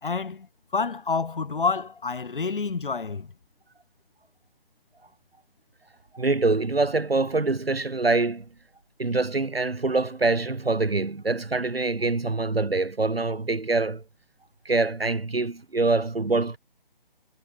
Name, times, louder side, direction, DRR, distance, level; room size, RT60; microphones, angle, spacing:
voice 1, 0.0-3.3, left 4 dB, 60° left, 3.6 m, -28 dB
voice 2, 6.1-8.5 9.0-14.0 14.7-16.6, right 3 dB, 85° right, 1.8 m, -25 dB
figure-of-eight pair, 145°, 29 cm